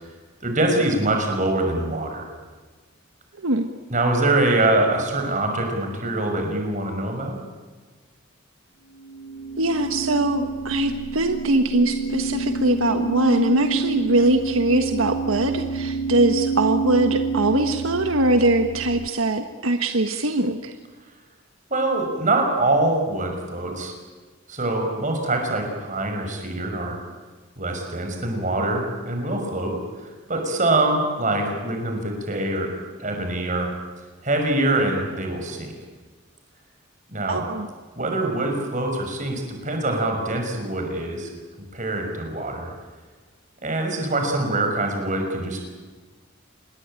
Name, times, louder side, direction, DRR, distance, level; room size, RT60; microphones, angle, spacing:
voice 1, 0.4-2.3 3.9-7.4 21.7-23.9 24.5-27.0 27.6-29.8 30.3-32.7 33.0-33.7 34.2-35.7 37.1-37.4 38.0-41.3 41.7-42.7 43.6-45.6, right 2 dB, 35° right, 3 dB, 5.9 m, -24 dB
voice 2, 3.4-3.7 9.6-20.7 37.3-37.7, right 2 dB, 80° right, 6 dB, 1.5 m, -22 dB
sound 1, 9.0-19.1, right 4 dB, 60° left, 1.1 m, -28 dB
27.0 x 21.5 x 9.0 m, 1.4 s
head